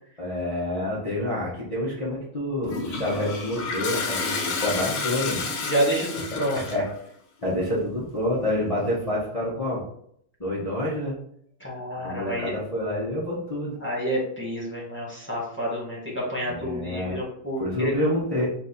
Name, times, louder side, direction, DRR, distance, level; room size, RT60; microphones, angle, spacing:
voice 1, 0.2-5.5 6.5-6.9 7.4-9.8 10.4-11.1 12.0-13.7 16.4-17.2 17.6-18.5, left 1 dB, 55° left, -7 dB, 0.4 m, -28 dB
Toilet flush, 2.6-6.9, left 4 dB, 75° left, 1.7 m, -30 dB
voice 2, 5.6-6.6 11.6-12.5 13.8-17.9, equal, 5° left, -6 dB, 1.0 m, -28 dB
4.1 x 2.6 x 4.1 m, 0.68 s
omnidirectional pair, 2.4 m